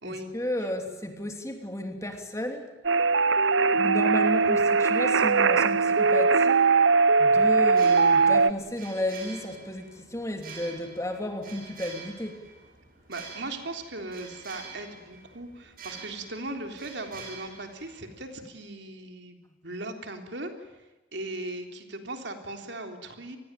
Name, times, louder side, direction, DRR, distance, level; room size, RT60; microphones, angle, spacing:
voice 1, 0.0-2.7 3.7-6.6 7.2-12.4, left 1 dB, 15° left, 4 dB, 2.9 m, -33 dB
sound 1, 2.8-8.5, right 4 dB, 85° right, 0.8 m, -20 dB
sound 2, 7.6-18.4, right 5 dB, 50° right, 6.7 m, -47 dB
voice 2, 13.1-20.5 21.1-23.4, right 2 dB, 70° right, 4 dB, 3.5 m, -38 dB
27.5 x 20.5 x 9.0 m, 1.1 s
head